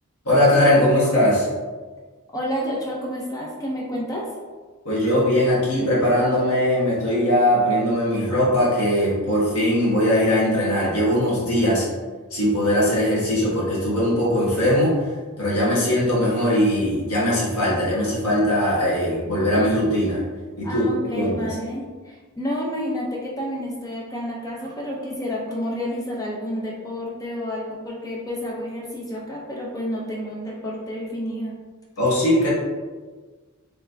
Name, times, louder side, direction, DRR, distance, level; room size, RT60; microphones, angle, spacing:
voice 1, 0.2-1.5 4.8-11.9 12.3-14.9 15.4-20.2 20.6-21.5 32.0-32.5, left 1 dB, 85° left, -6 dB, 1.4 m, -20 dB
voice 2, 2.3-4.3 20.6-31.5, equal, 15° left, -2 dB, 0.5 m, -30 dB
4.1 x 3.1 x 2.6 m, 1.4 s
head